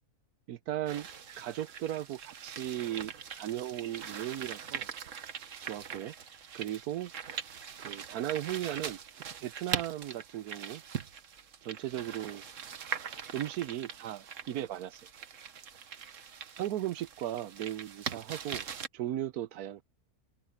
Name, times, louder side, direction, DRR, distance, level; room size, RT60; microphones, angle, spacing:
voice 1, 0.5-1.1 1.4-4.9 5.6-6.1 6.5-7.1 7.8-9.0 9.4-10.8 11.6-12.4 13.3-15.0 16.6-18.7 18.9-19.8, right 12 dB, 80° right, 1.2 m, -36 dB
sound 1, 0.9-18.9, right 7 dB, 55° right, 1.4 m, -42 dB
omnidirectional pair, 1.6 m